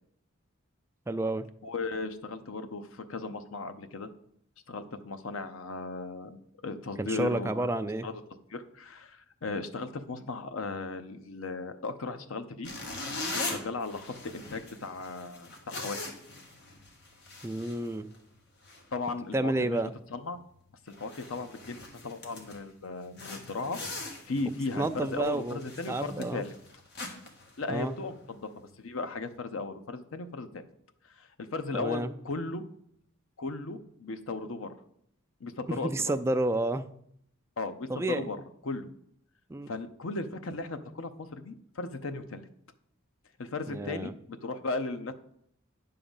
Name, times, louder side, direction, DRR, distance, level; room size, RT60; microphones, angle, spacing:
voice 1, 1.1-1.5 7.0-8.1 17.4-18.1 19.3-19.9 24.8-25.6 25.9-26.5 27.7-27.9 31.7-32.1 35.7-36.9 37.9-38.3 39.5-39.7 43.6-44.1, right 2 dB, 15° right, 8 dB, 0.3 m, -30 dB
voice 2, 1.6-4.1 4.7-7.7 8.0-8.2 8.5-12.7 13.3-16.2 18.9-20.4 20.9-26.5 27.6-30.6 31.0-32.6 33.4-34.7 35.4-36.1 37.6-38.4 38.6-38.9 39.7-42.4 43.4-45.1, left 3 dB, 75° left, 9 dB, 0.7 m, -36 dB
sound 1, 12.6-18.3 18.6-18.9 19.4-19.6 19.9-20.0 20.5-20.6 20.9-22.7 23.1-28.2, left 2 dB, 55° left, 1.5 m, -41 dB
9.8 x 3.8 x 7.1 m, 0.71 s
head